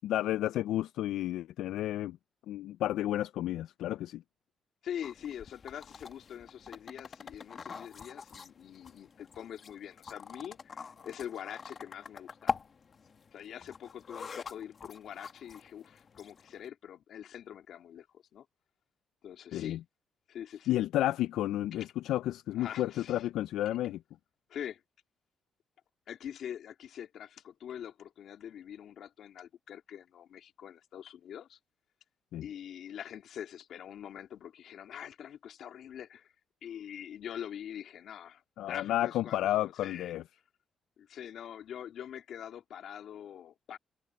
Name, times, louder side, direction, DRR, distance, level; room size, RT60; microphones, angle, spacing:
voice 1, 0.0-2.2 2.5-4.2 19.5-19.8 20.7-24.0 32.3-32.5 38.6-40.2, left 13 dB, 90° left, 0.3 m, -31 dB
voice 2, 4.8-12.6 13.3-18.4 19.2-19.8 20.3-20.8 21.7-21.9 22.6-23.3 24.5-24.8 26.1-31.6 32.4-36.3 36.6-40.2 41.0-43.8, left 9 dB, 70° left, 3.0 m, -44 dB
sound 1, 5.0-16.7, left 5 dB, 45° left, 1.3 m, -44 dB
cardioid pair, 100°, 0 cm